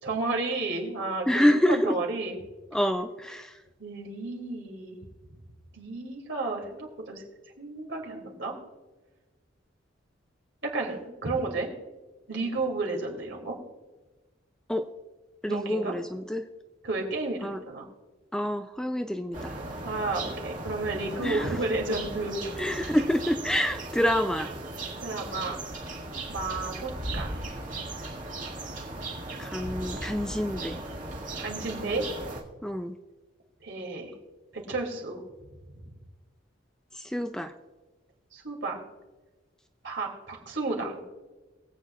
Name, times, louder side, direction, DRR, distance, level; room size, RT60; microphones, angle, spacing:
voice 1, 0.0-2.4 3.8-5.0 5.7-7.2 7.6-8.6 10.6-11.7 12.3-13.6 15.5-16.0 16.8-17.9 19.8-22.4 25.0-25.6 25.9-26.0 26.3-27.4 31.4-32.0 33.6-34.1 34.5-35.2 35.8-36.0 38.3-38.8 39.8-41.0, right 3 dB, 70° right, 0 dB, 2.7 m, -32 dB
voice 2, 1.3-1.9 2.7-3.5 14.7-14.8 15.4-16.4 17.4-17.6 18.3-19.6 21.2-21.6 22.6-24.5 29.4-30.8 32.6-33.0 37.0-37.5, equal, 5° left, 7 dB, 0.3 m, -27 dB
sound 1, 19.3-32.4, right 2 dB, 40° right, 2.0 m, -37 dB
22.5 x 8.4 x 2.4 m, 1.2 s
head